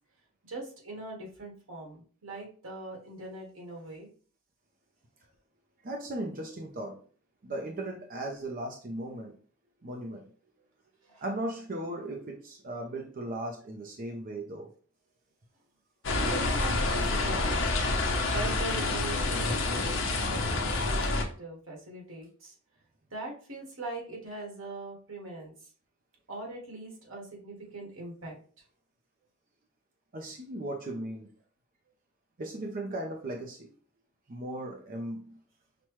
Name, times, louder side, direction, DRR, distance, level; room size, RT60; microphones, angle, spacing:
voice 1, 0.4-4.1 11.1-11.2 16.2-17.6 18.2-22.5 23.1-25.7 26.3-28.4, right 2 dB, 90° right, 1.6 m, -41 dB
voice 2, 5.8-7.0 7.4-9.4 9.8-10.3 11.2-14.7 19.5-19.6 30.1-31.3 32.4-33.7 34.3-35.4, right 1 dB, 45° right, 0.6 m, -37 dB
sound 1, 16.0-21.2, left 2 dB, 65° left, 0.8 m, -28 dB
5.8 x 2.2 x 3.1 m
head